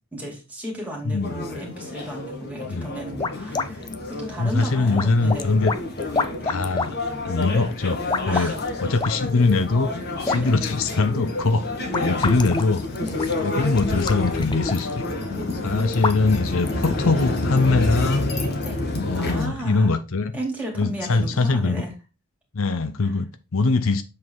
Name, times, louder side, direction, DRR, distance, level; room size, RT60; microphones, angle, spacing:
voice 1, 0.1-5.6 8.3-8.6 10.3-10.5 11.9-12.1 13.0-13.2 15.2-16.0 16.6-16.8 18.6-18.8 19.1-19.9 20.3-21.9 23.0-23.1, equal, 5° right, 2.5 m, -34 dB
voice 2, 1.1-1.6 2.6-2.9 4.4-5.7 6.4-7.0 7.3-8.5 8.8-9.9 10.2-12.8 13.4-15.1 15.6-18.3 19.0-20.3 20.8-21.8 22.5-24.0, left 3 dB, 60° left, 0.6 m, -22 dB
sound 1, 1.2-19.5, left 2 dB, 45° left, 1.6 m, -29 dB
sound 2, 2.8-17.4, left 3 dB, 20° left, 0.4 m, -31 dB
7.4 x 4.1 x 4.6 m
head